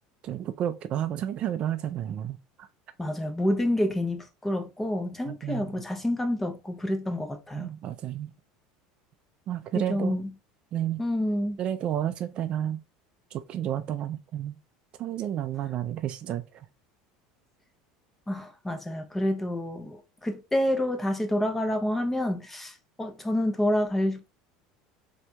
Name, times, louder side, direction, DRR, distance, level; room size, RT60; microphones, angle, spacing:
voice 1, 0.2-2.7 5.3-5.7 7.5-8.3 9.5-10.2 10.7-11.0 11.6-12.8 13.3-14.6 15.0-16.7, right 11 dB, 40° right, 0.3 m, -31 dB
voice 2, 3.0-7.7 9.9-10.3 11.0-11.6 18.3-24.3, left 1 dB, 10° left, 0.6 m, -28 dB
4.2 x 2.7 x 2.2 m
supercardioid pair, 130°, 3 cm